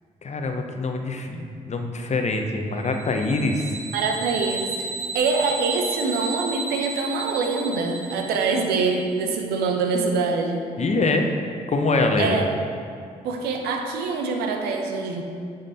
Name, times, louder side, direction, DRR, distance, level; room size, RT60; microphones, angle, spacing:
voice 1, 0.2-3.8 10.8-11.3 11.7-12.4, left 2 dB, 45° left, 4 dB, 0.8 m, -24 dB
sound 1, 3.0-8.9, right 3 dB, 55° right, 1.6 m, -33 dB
voice 2, 3.9-4.9 5.1-10.7 12.2-12.5 13.2-15.2, right 4 dB, 80° right, 3 dB, 0.7 m, -24 dB
9.3 x 3.7 x 4.2 m, 2.3 s
hypercardioid pair, 45°, 16 cm